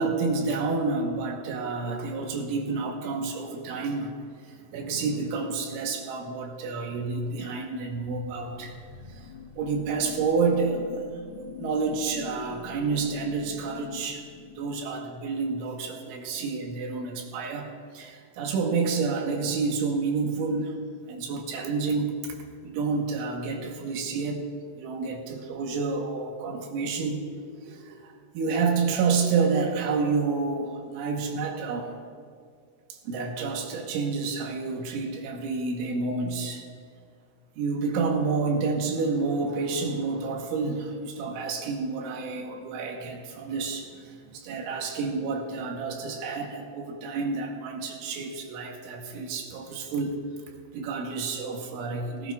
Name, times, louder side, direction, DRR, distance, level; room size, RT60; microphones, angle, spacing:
voice 1, 0.0-4.2 4.4-8.8 9.1-14.3 14.5-20.8 21.1-22.4 22.6-24.4 24.8-31.9 32.9-36.6 37.6-50.2 50.7-52.3, right 4 dB, 80° right, 2 dB, 3.4 m, -29 dB
sound 1, 8.4-15.1, left 10 dB, 85° left, 2.9 m, -44 dB
18.5 x 17.5 x 2.3 m, 2.1 s
omnidirectional pair, 5.6 m